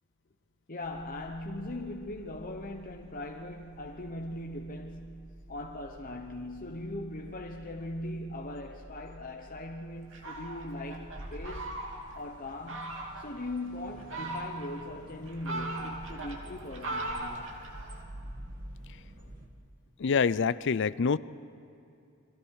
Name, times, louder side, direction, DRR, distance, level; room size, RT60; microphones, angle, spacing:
voice 1, 0.7-11.7 12.1-17.6, left 1 dB, 40° left, 1 dB, 1.1 m, -40 dB
sound 1, 0.8-19.5, right 1 dB, 40° right, 2.6 m, -50 dB
Fowl, 10.1-12.2 12.7-13.3 13.9-14.8 15.2-18.0, right 2 dB, 60° right, 2.9 m, -38 dB
voice 2, 20.0-21.2, left 5 dB, 60° left, 17 dB, 0.5 m, -26 dB
29.5 x 23.0 x 4.8 m, 2.7 s
head